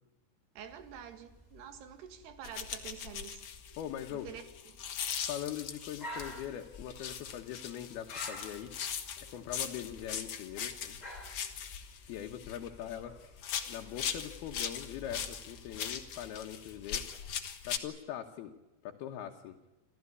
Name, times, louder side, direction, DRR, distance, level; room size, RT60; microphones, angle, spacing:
sound 1, 0.6-17.2, left 1 dB, 10° left, 3.9 m, -52 dB
voice 1, 0.6-3.4 4.1-4.8, right 8 dB, 80° right, 10 dB, 4.0 m, -48 dB
sound 2, 2.4-6.4 6.9-13.0 13.4-17.8, left 8 dB, 50° left, 2.5 m, -40 dB
voice 2, 3.8-4.3 5.2-8.7 9.3-11.0 12.1-13.1 13.7-17.0 17.6-18.5 18.8-19.6, left 10 dB, 75° left, 3 dB, 3.1 m, -41 dB
27.5 x 15.0 x 9.7 m, 1.0 s
omnidirectional pair, 4.7 m